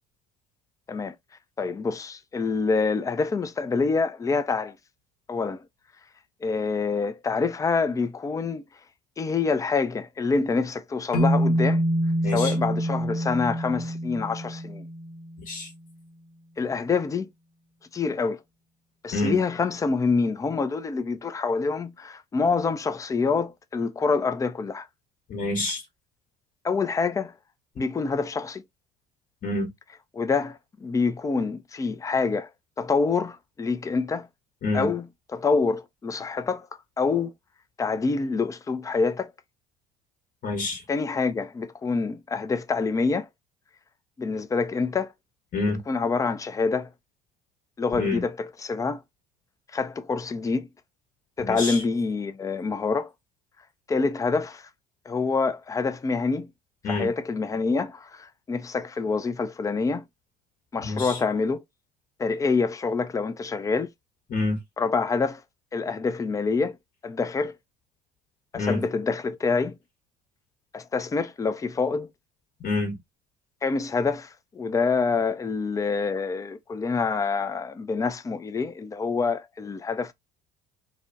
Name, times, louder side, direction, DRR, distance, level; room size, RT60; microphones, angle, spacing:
voice 1, 1.6-4.8 5.3-5.6 6.4-8.6 9.2-11.8 12.3-14.9 16.6-17.3 17.9-18.4 19.0-24.9 26.6-27.3 27.8-28.6 30.1-32.5 32.8-34.3 34.7-35.1 35.3-36.7 37.0-37.3 37.8-39.3 40.9-43.3 44.2-45.1 45.9-46.9 47.8-49.0 49.7-50.7 51.4-53.1 53.9-54.7 55.1-56.5 56.9-60.0 60.7-61.6 62.2-63.9 64.8-65.4 65.7-66.8 67.0-67.6 68.5-69.8 70.7-72.1 73.6-80.1, left 4 dB, 15° left, 0.4 m, -26 dB
sound 1, 11.1-15.4, right 1 dB, 75° left, 0.8 m, -26 dB
voice 2, 12.2-12.5 15.5-15.7 19.1-19.4 25.3-25.8 29.4-29.7 34.6-34.9 40.4-40.8 45.5-45.8 47.9-48.2 51.4-51.8 56.8-57.1 60.8-61.2 64.3-64.6 68.5-68.8 72.6-73.0, left 2 dB, 45° left, 1.1 m, -27 dB
2.4 x 2.1 x 2.5 m
hypercardioid pair, 65°, 20 cm